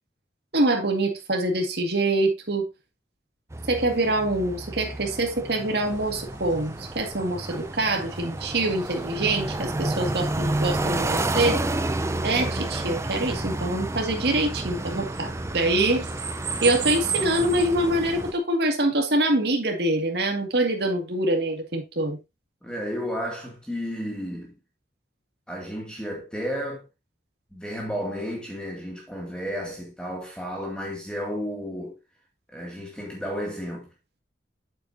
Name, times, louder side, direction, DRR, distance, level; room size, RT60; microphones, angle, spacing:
voice 1, 0.5-2.7 3.7-11.6 12.2-16.0 16.6-22.2, right 2 dB, 60° right, 2.1 m, -25 dB
sound 1, 3.5-18.3, right 2 dB, 15° right, 0.6 m, -30 dB
sound 2, 5.8-18.4, right 6 dB, 80° right, 3.1 m, -39 dB
voice 2, 22.6-24.6 25.5-26.8 27.5-32.0 32.5-33.9, equal, 5° left, 2.3 m, -32 dB
8.4 x 8.3 x 2.7 m
head